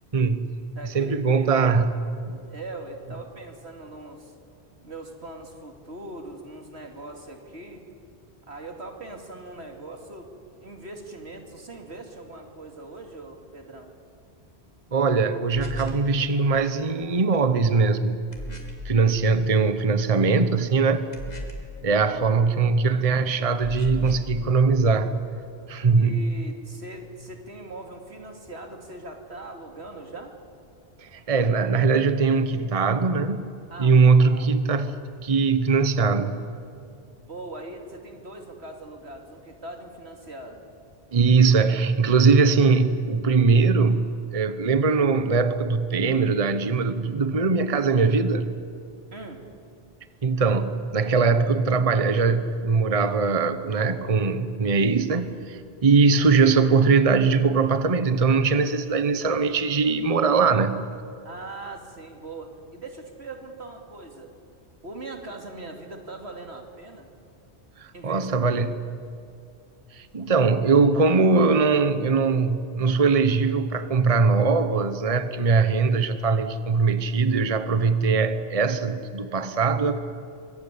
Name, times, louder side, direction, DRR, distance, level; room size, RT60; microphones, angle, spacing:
voice 1, 0.1-0.5 0.8-2.4 14.9-18.2 18.8-21.1 21.8-25.1 25.7-26.2 31.0-33.5 33.8-34.9 35.2-36.4 41.1-48.5 50.2-60.8 67.8-68.9 69.9-80.0, right 4 dB, 35° right, 11 dB, 1.0 m, -21 dB
voice 2, 0.7-1.5 2.5-4.3 4.8-7.9 8.5-10.3 10.6-13.9 25.9-30.3 33.7-34.0 34.3-34.7 37.2-40.7 49.1-49.5 61.2-64.3 64.8-67.1 67.9-68.5, right 2 dB, 80° right, 4 dB, 3.1 m, -41 dB
sound 1, 15.5-16.1 18.3-18.9 21.1-21.8 23.6-24.3, left 1 dB, 40° left, 2.9 m, -36 dB
24.5 x 22.0 x 10.0 m, 2.5 s
omnidirectional pair, 1.1 m